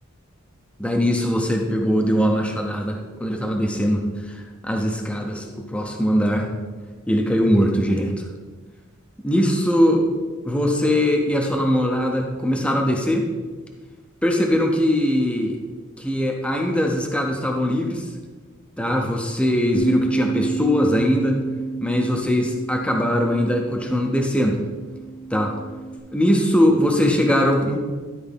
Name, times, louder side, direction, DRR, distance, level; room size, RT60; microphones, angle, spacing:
voice 1, 0.8-6.5 7.1-8.1 9.2-10.0 10.5-13.3 14.2-15.6 16.0-18.0 18.8-21.4 21.8-24.6 25.3-25.5 26.1-27.8, equal, 5° left, 1 dB, 0.7 m, -21 dB
Bass guitar, 19.7-26.0, right 4 dB, 55° left, 0.5 m, -30 dB
12.0 x 4.6 x 3.5 m, 1.4 s
head